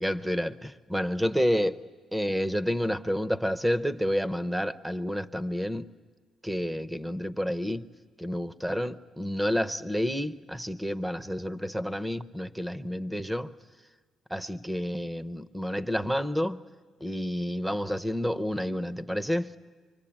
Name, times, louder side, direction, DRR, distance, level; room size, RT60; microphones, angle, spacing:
voice 1, 0.0-1.8 2.1-5.9 6.4-7.9 8.2-13.5 14.3-16.6 17.0-19.5, equal, 5° right, 0.7 m, -29 dB
25.0 x 24.0 x 8.8 m
cardioid pair, 90°, 0 cm